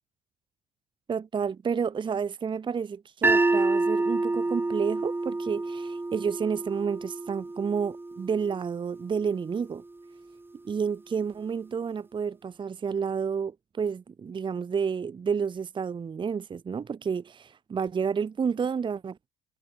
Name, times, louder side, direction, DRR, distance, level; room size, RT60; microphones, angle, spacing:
voice 1, 1.1-9.8 10.6-19.2, right 6 dB, 30° right, 0.8 m, -30 dB
sound 1, 3.2-9.4, right 2 dB, 10° right, 1.3 m, -28 dB
cardioid pair, 110°, 17 cm